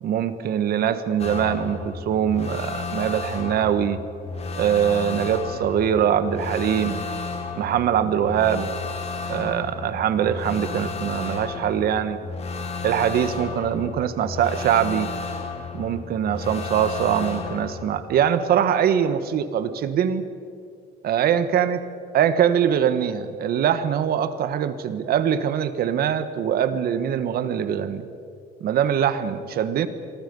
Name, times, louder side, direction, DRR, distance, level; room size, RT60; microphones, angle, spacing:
voice 1, 0.0-4.0 4.6-7.0 7.6-8.7 9.3-12.2 12.8-15.1 15.7-20.2 21.0-21.8 22.1-28.0 28.6-29.9, right 9 dB, 65° right, 11 dB, 1.5 m, -23 dB
sound 1, 1.2-17.8, left 4 dB, 40° left, 3.2 m, -33 dB
27.5 x 23.5 x 5.5 m, 2.5 s
cardioid pair, 110°, 17 cm